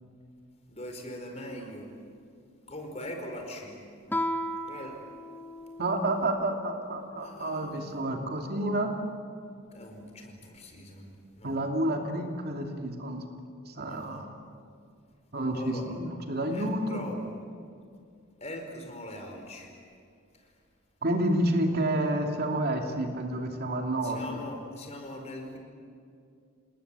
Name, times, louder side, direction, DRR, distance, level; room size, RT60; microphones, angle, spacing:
voice 1, 0.7-1.9 2.7-3.8 4.6-4.9 7.2-8.1 9.7-11.6 13.8-14.3 15.5-15.9 16.5-17.3 18.4-19.7 20.4-20.5 24.0-25.6, left 1 dB, 35° left, 3 dB, 4.8 m, -41 dB
Guitar, 4.1-6.5, equal, 10° left, 1.0 m, -35 dB
voice 2, 5.8-9.0 11.4-13.2 13.7-14.3 15.3-17.1 21.0-24.4, right 1 dB, 50° right, 3 dB, 2.8 m, -29 dB
29.0 x 19.5 x 9.0 m, 2.4 s
head